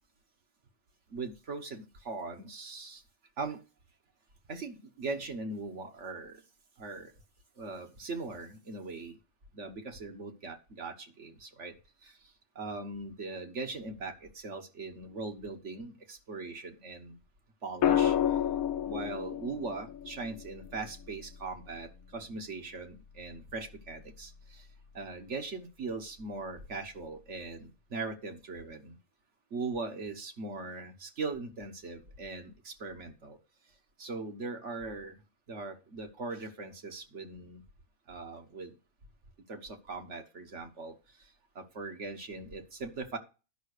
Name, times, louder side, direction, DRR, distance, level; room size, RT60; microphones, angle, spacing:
voice 1, 1.1-3.0 3.4-3.6 4.5-6.4 6.8-7.1 7.6-9.2 9.5-11.7 12.0-12.1 12.5-17.2 17.6-18.2 18.8-24.6 24.9-28.9 29.5-33.4 34.0-35.1 35.5-37.6 38.1-38.7 39.5-40.9 41.5-43.2, right 3 dB, 60° right, 5 dB, 1.6 m, -40 dB
sound 1, 17.8-21.9 23.6-24.0, left 10 dB, 80° left, 1.1 m, -31 dB
11.0 x 5.7 x 6.6 m, 0.33 s
omnidirectional pair, 1.4 m